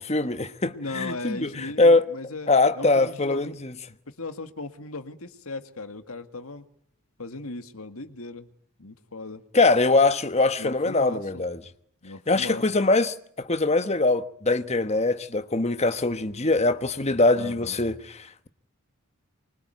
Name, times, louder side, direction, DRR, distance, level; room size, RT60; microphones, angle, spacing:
voice 1, 0.0-2.1 2.5-3.7 9.5-11.6 12.3-18.5, left 3 dB, 30° left, 1.2 m, -22 dB
voice 2, 0.7-2.5 2.8-3.6 4.1-6.6 7.2-8.5 8.8-9.4 10.6-11.4 12.0-12.6 17.4-17.8, left 3 dB, 75° left, 2.0 m, -37 dB
25.0 x 24.0 x 9.4 m
head